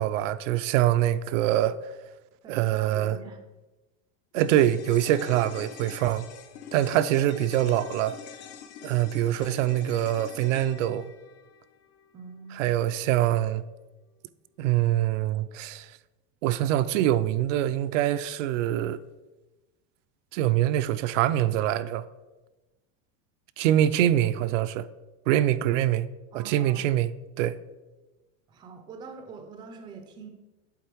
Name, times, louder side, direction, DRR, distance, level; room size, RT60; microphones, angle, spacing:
voice 1, 0.0-1.7 2.5-3.2 4.3-6.3 6.7-8.1 8.8-11.1 12.6-13.6 14.6-15.9 16.4-19.0 20.3-22.0 23.6-24.8 25.3-26.1 26.3-27.1 27.4-27.6, right 12 dB, 90° right, 0.5 m, -24 dB
voice 2, 2.4-3.4 12.1-12.8 26.3-26.8 28.5-30.3, right 5 dB, 15° right, 0.3 m, -44 dB
sound 1, 4.4-12.8 13.1-13.2, left 8 dB, 70° left, 0.8 m, -45 dB
8.2 x 3.6 x 4.5 m
supercardioid pair, 160°, 37 cm